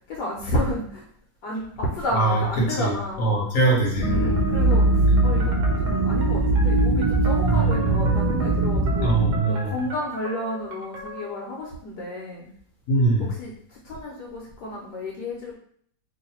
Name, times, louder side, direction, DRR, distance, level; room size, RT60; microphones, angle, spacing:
voice 1, 0.1-1.0 1.4-3.4 4.0-9.1 9.4-12.5 13.2-15.5, left 1 dB, 70° left, -2 dB, 1.3 m, -31 dB
voice 2, 3.2-4.4 7.5-8.2 9.0-9.7 12.9-13.3, right 3 dB, 55° left, -3 dB, 1.1 m, -22 dB
sound 1, 3.9-9.4, right 2 dB, 80° right, 0.4 m, -21 dB
sound 2, 4.0-11.4, right 1 dB, 55° right, 1.1 m, -37 dB
3.1 x 2.6 x 4.3 m, 0.63 s
omnidirectional pair, 2.0 m